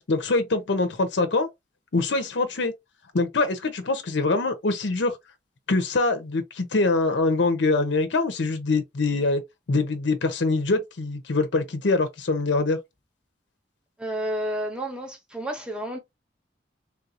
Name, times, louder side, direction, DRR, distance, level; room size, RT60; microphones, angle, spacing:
voice 1, 0.1-1.5 1.9-2.7 3.1-5.2 5.7-9.4 9.7-12.8, left 3 dB, 70° left, 0.6 m, -24 dB
voice 2, 14.0-16.0, right 1 dB, 5° right, 0.8 m, -30 dB
3.6 x 2.4 x 2.7 m
head